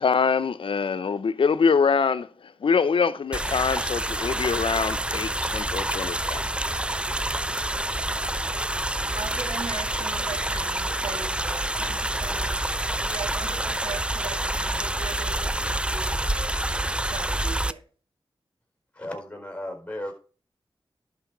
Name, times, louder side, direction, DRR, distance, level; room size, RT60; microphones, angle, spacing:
voice 1, 0.0-2.3 2.6-6.4, left 5 dB, 75° left, 0.7 m, -24 dB
sound 1, 3.3-17.7, right 1 dB, 10° right, 0.5 m, -27 dB
voice 2, 9.2-17.8, right 5 dB, 85° right, 2.0 m, -40 dB
voice 3, 18.9-20.1, left 1 dB, 10° left, 4.2 m, -35 dB
11.5 x 4.7 x 6.0 m
cardioid pair, 55°, 9 cm